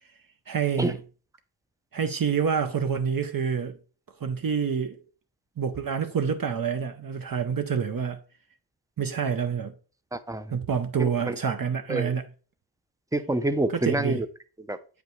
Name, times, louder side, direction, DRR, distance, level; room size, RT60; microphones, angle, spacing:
voice 1, 0.5-1.0 1.9-3.8 4.2-5.0 5.6-8.2 9.0-9.7 10.5-12.2 13.8-14.2, right 6 dB, 50° right, 0.6 m, -27 dB
voice 2, 10.1-10.5 11.0-11.4 11.9-12.1 13.1-14.3 14.6-14.8, right 2 dB, 10° right, 0.5 m, -27 dB
7.9 x 5.1 x 3.1 m
wide cardioid pair, 85°, 44 cm